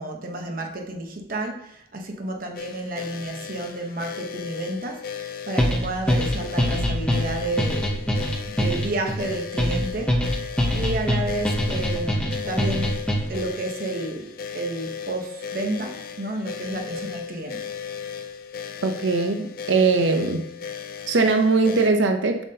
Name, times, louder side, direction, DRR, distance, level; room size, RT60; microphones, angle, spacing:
voice 1, 0.0-5.0 5.5-8.0 8.6-13.0 13.3-14.3 14.5-17.7, right 2 dB, 45° right, 2 dB, 0.9 m, -31 dB
sound 1, 2.5-21.9, left 7 dB, 45° left, 0.4 m, -36 dB
sound 2, 5.6-13.5, equal, 5° left, 0.7 m, -24 dB
voice 2, 18.8-20.4 21.1-22.4, right 3 dB, 75° right, 6 dB, 0.7 m, -20 dB
7.5 x 5.8 x 2.8 m, 0.75 s
head